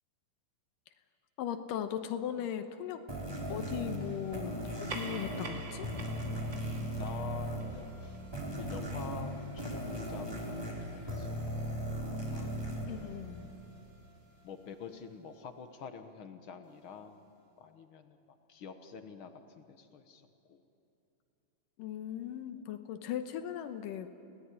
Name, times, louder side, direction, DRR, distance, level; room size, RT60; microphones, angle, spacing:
voice 1, 1.4-3.0 3.5-5.9 12.9-13.5 21.8-24.1, left 10 dB, 85° left, 8 dB, 2.6 m, -38 dB
sound 1, 3.1-13.9, equal, 5° right, 4.1 m, -38 dB
sound 2, 4.6-9.5, right 3 dB, 35° right, 2.9 m, -47 dB
voice 2, 7.0-8.2 8.6-11.7 12.3-12.9 14.4-17.3 17.6-18.2 18.5-20.6, left 6 dB, 65° left, 8 dB, 1.3 m, -47 dB
30.0 x 17.5 x 9.9 m, 2.8 s
omnidirectional pair, 3.8 m